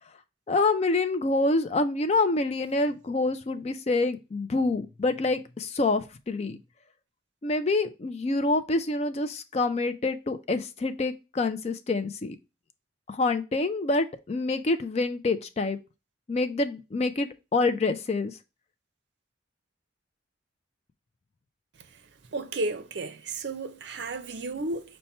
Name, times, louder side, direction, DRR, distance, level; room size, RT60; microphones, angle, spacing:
voice 1, 0.5-6.6 7.4-12.4 13.1-15.8 16.3-18.3, left 3 dB, 35° left, 0.4 m, -26 dB
voice 2, 22.3-25.0, right 2 dB, 60° right, 0.5 m, -33 dB
5.6 x 2.2 x 4.2 m
head